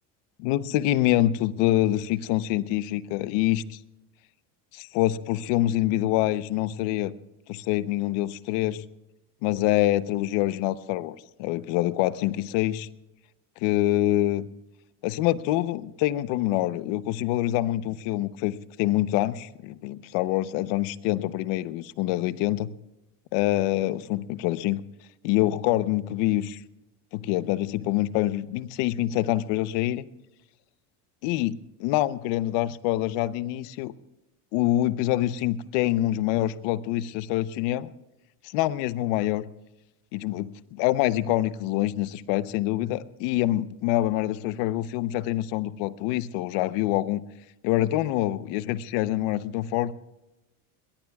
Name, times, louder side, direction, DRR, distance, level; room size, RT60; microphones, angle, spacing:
voice 1, 0.4-3.8 4.7-7.1 7.5-8.8 9.4-12.9 13.6-14.5 15.0-22.7 23.3-24.8 25.2-26.6 27.1-30.1 31.2-33.9 34.5-37.9 38.4-39.5 40.1-47.2 47.6-49.9, left 15 dB, 75° left, 15 dB, 0.9 m, -26 dB
22.0 x 20.0 x 2.4 m, 0.96 s
supercardioid pair, 110°, 44 cm